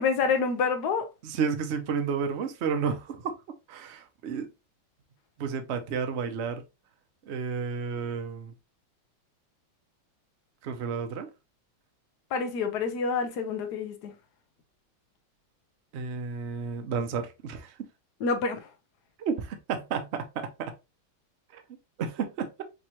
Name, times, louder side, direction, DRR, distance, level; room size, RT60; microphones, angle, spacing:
voice 1, 0.0-1.1 12.3-14.1 18.2-18.6, left 5 dB, 60° left, 1.2 m, -27 dB
voice 2, 1.2-3.3 3.7-4.5 5.4-6.6 7.2-8.5 10.6-11.3 15.9-17.8 19.2-20.7 21.5-21.6 22.0-22.6, right 6 dB, 75° right, 0.6 m, -31 dB
5.3 x 2.9 x 2.9 m
omnidirectional pair, 2.2 m